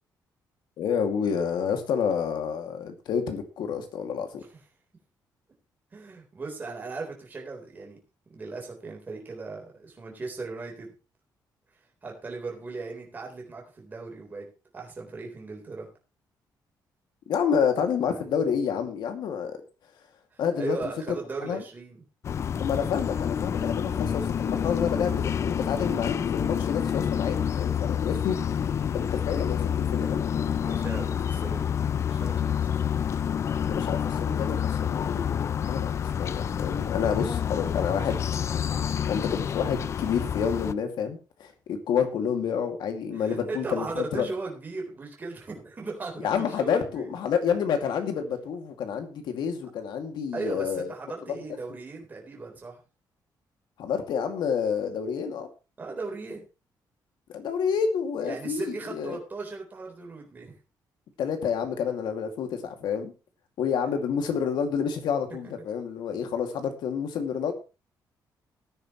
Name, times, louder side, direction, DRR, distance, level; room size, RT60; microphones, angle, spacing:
voice 1, 0.8-4.4 17.3-19.6 20.4-20.9 21.4-21.6 22.6-28.7 28.9-30.6 33.7-35.4 35.7-38.2 39.1-44.3 46.2-50.9 51.3-51.4 53.8-55.5 57.3-59.2 61.2-63.1 63.6-67.5, left 7 dB, 85° left, 6 dB, 2.4 m, -29 dB
voice 2, 5.9-8.0 8.3-10.9 12.0-14.5 14.7-15.9 18.1-18.2 20.3-22.0 30.6-31.6 32.1-32.6 43.1-47.1 50.3-52.8 55.8-56.4 58.2-60.6, right 3 dB, 25° right, 0 dB, 3.9 m, -37 dB
sound 1, 22.2-40.7, left 8 dB, 40° left, 0.5 m, -28 dB
18.0 x 9.9 x 3.1 m, 0.31 s
cardioid pair, 170°, 7 cm